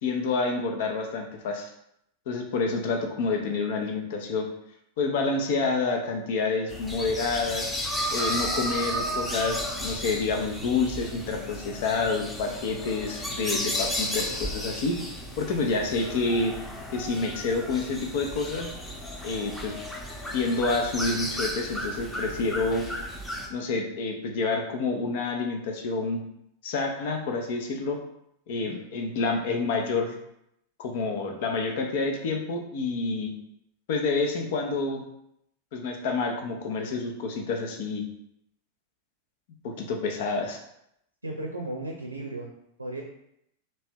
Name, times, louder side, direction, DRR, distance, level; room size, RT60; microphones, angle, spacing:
voice 1, 0.0-1.7 2.3-4.5 5.0-7.7 8.1-15.0 15.4-16.5 16.9-18.7 19.2-19.7 20.3-22.9 23.5-26.2 26.6-28.0 28.5-30.2 30.8-33.3 33.9-35.0 35.7-38.0 39.6-40.6, left 3 dB, 50° left, 3 dB, 0.8 m, -28 dB
sound 1, 6.7-23.5, equal, 10° left, 0.9 m, -33 dB
voice 2, 41.2-42.5 42.8-43.0, right 2 dB, 85° right, 1 dB, 0.6 m, -35 dB
3.2 x 3.1 x 4.4 m, 0.76 s
figure-of-eight pair, 90°, 0 cm